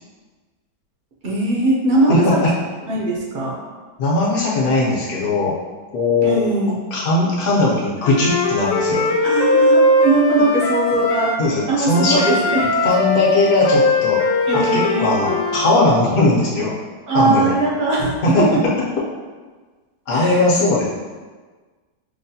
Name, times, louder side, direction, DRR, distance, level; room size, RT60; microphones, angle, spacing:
voice 1, 1.2-2.4 2.9-3.5 6.2-6.8 9.2-11.3 11.7-12.7 14.5-15.2 17.1-18.1 18.4-18.6 20.1-20.4, right 2 dB, 80° right, -4 dB, 0.5 m, -20 dB
voice 2, 2.1-2.5 4.0-5.5 5.9-6.4 6.9-9.1 11.4-12.3 12.8-14.2 14.5-16.7 17.1-17.5 18.2-18.4 20.1-21.0, left 2 dB, 60° left, -5 dB, 1.1 m, -18 dB
Wind instrument woodwind instrument, 8.0-11.4 11.9-15.7, left 2 dB, 85° left, 1.2 m, -19 dB
5.3 x 2.2 x 2.7 m, 1.4 s
omnidirectional pair, 1.9 m